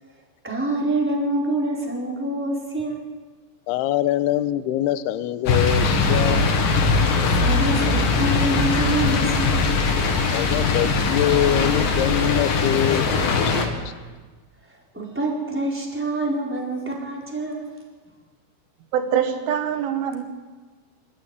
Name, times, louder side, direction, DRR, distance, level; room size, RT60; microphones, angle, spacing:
voice 1, 0.4-3.0 7.3-9.7 14.7-17.7, right 2 dB, 5° right, -2 dB, 3.3 m, -26 dB
voice 2, 3.7-6.5 10.3-13.1 13.4-13.8, left 13 dB, 80° left, 11 dB, 2.4 m, -24 dB
sound 1, 5.5-13.7, left 4 dB, 55° left, 3.1 m, -20 dB
voice 3, 18.9-20.2, right 8 dB, 80° right, 7 dB, 4.1 m, -23 dB
25.5 x 14.0 x 9.7 m, 1.4 s
omnidirectional pair, 5.6 m